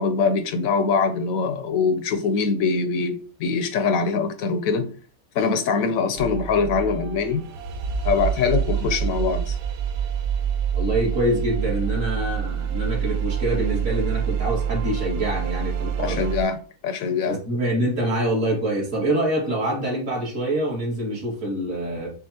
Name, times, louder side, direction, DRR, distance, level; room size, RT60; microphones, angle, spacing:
voice 1, 0.0-4.9 5.3-7.5 8.0-9.6 16.0-17.4, left 5 dB, 75° left, 1.0 m, -23 dB
sound 1, 6.2-16.4, right 8 dB, 80° right, 1.1 m, -26 dB
voice 2, 10.7-16.3 17.3-22.1, right 1 dB, 60° right, 2.1 m, -25 dB
6.6 x 2.4 x 2.7 m
omnidirectional pair, 1.5 m